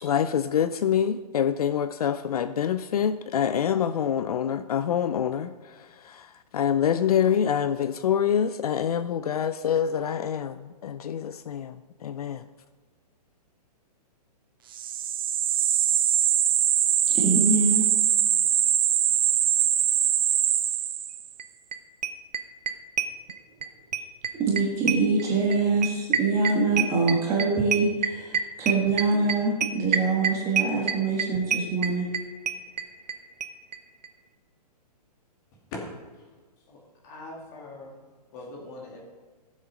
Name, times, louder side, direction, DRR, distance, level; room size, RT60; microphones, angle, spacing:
voice 1, 0.0-12.4, left 8 dB, 65° left, 0.5 m, -26 dB
sound 1, 14.7-21.3, right 10 dB, 35° right, 0.5 m, -23 dB
voice 2, 17.1-17.9 24.4-32.1, right 3 dB, 15° right, 1.5 m, -24 dB
sound 2, 21.4-21.5 21.7-21.8 22.0-23.7 23.9-33.2 33.4-33.5 33.7-33.8 34.0-34.1, right 7 dB, 85° right, 1.1 m, -27 dB
voice 3, 36.7-38.0 38.3-39.0, left 2 dB, 25° left, 2.3 m, -41 dB
16.0 x 7.4 x 5.3 m
hypercardioid pair, 175°, 21 cm